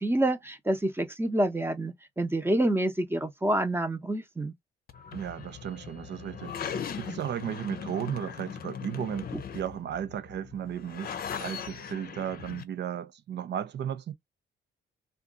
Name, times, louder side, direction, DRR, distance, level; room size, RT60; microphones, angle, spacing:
voice 1, 0.0-4.5, right 1 dB, 10° right, 0.9 m, -27 dB
sound 1, 4.9-12.6, left 7 dB, 50° left, 0.7 m, -39 dB
voice 2, 5.1-14.1, right 9 dB, 60° right, 0.7 m, -35 dB
2.6 x 2.4 x 3.8 m
cardioid pair, 90°, 20 cm